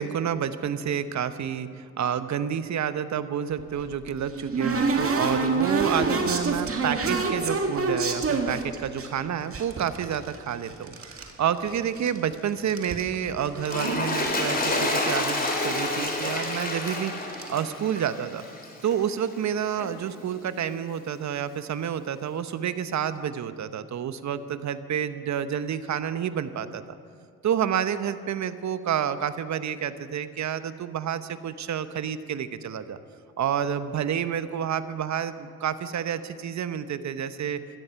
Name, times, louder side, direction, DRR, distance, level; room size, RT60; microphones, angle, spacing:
voice 1, 0.0-18.4 18.8-27.0 27.4-33.0 33.4-37.6, right 8 dB, 60° right, 12 dB, 0.9 m, -29 dB
sound 1, 3.6-9.1 9.5-11.3 11.6-12.3 12.6-13.9 14.3-14.4 14.6-14.8 15.1-15.2 16.1-16.2 16.4-16.7 17.2-17.5, right 3 dB, 45° right, 2.1 m, -27 dB
Toilet flush, 13.6-19.1 19.8-19.9, left 2 dB, 25° left, 3.4 m, -28 dB
16.5 x 13.0 x 5.8 m, 2.2 s
supercardioid pair, 55°, 33 cm